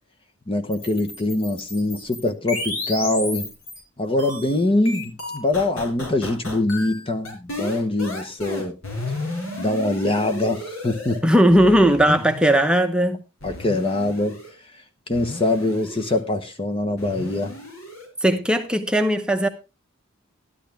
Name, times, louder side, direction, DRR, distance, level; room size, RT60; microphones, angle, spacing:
voice 1, 0.5-3.5 4.0-8.8 9.6-11.2 12.0-12.2 13.4-14.4 15.1-17.5, left 2 dB, 25° left, 0.9 m, -23 dB
sound 1, 0.7-3.8 4.2-11.2 11.5-12.6 13.4-14.5 15.1-16.2 17.0-18.1, left 2 dB, 70° left, 5.2 m, -33 dB
voice 2, 11.2-13.2 18.2-19.5, equal, 5° right, 0.9 m, -17 dB
12.5 x 12.0 x 3.4 m
head